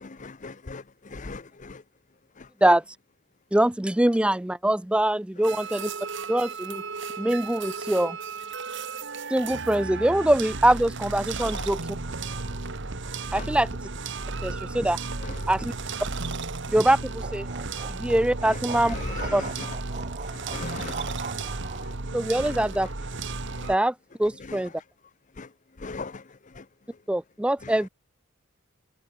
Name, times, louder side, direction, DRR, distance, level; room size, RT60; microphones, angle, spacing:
voice 1, 0.0-0.8 1.1-1.8 2.4-2.5 11.5-11.6 13.3-13.4 15.2-15.3 18.5-18.6 18.9-19.5 20.5-21.1 24.5-24.6 25.4-25.5 25.8-26.2 26.6-26.7 27.6-27.7, left 3 dB, 35° left, 0.7 m, -37 dB
voice 2, 3.5-5.9 6.3-6.8 7.2-8.2 9.3-11.8 13.3-13.7 14.4-15.0 15.5-15.7 16.7-17.5 17.9-19.0 19.3-19.4 22.1-22.9 23.7-24.7 27.1-27.9, right 1 dB, 5° right, 0.4 m, -23 dB
sound 1, 5.4-23.8, right 3 dB, 60° right, 1.7 m, -34 dB
sound 2, 17.2-21.9, right 4 dB, 35° right, 2.0 m, -40 dB
head